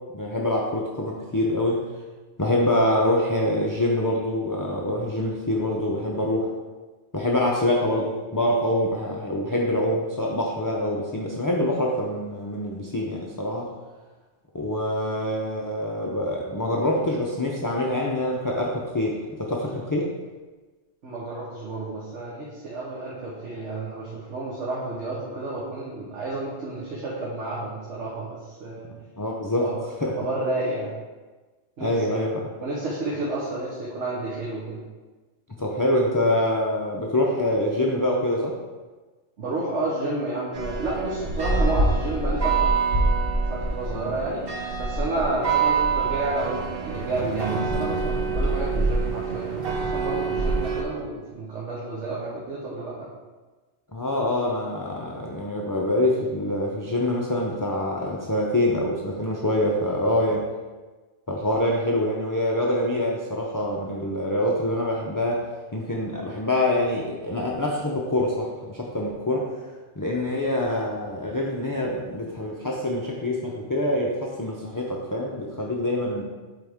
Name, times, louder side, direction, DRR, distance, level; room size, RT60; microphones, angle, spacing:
voice 1, 0.1-1.9 2.4-6.5 7.1-13.7 14.5-20.1 29.2-29.7 30.0-30.1 31.8-32.4 35.5-38.6 43.9-44.2 53.9-60.5 61.3-69.6 70.0-76.2, left 1 dB, 25° left, -2 dB, 0.4 m, -25 dB
voice 2, 21.0-28.9 29.6-29.7 30.2-30.9 31.8-32.3 32.6-34.8 39.4-42.7 43.5-44.4 44.8-53.1, right 2 dB, 85° right, -5 dB, 1.4 m, -30 dB
sound 1, 40.5-50.8, right 4 dB, 55° right, 1.1 m, -25 dB
7.9 x 4.0 x 3.5 m, 1.3 s
omnidirectional pair, 1.2 m